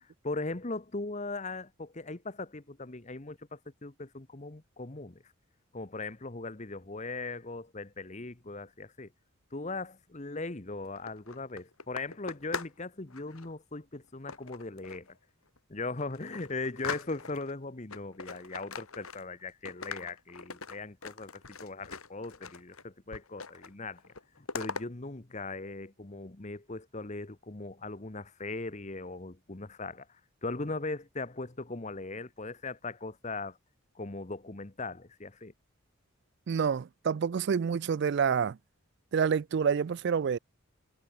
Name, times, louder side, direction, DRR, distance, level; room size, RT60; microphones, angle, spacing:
voice 1, 0.2-5.2 5.7-9.1 9.5-15.1 15.7-24.0 24.4-33.6 33.9-35.5, left 3 dB, 35° left, 1.1 m, -39 dB
sound 1, 10.8-12.8 13.1-13.5 14.3-15.1 15.6-15.7 16.0-17.5 17.9-19.4 19.7-22.8 23.1-23.7 24.0-24.8, left 5 dB, 90° left, 3.7 m, -41 dB
voice 2, 36.5-38.6 39.1-40.4, right 6 dB, 55° right, 0.3 m, -28 dB
head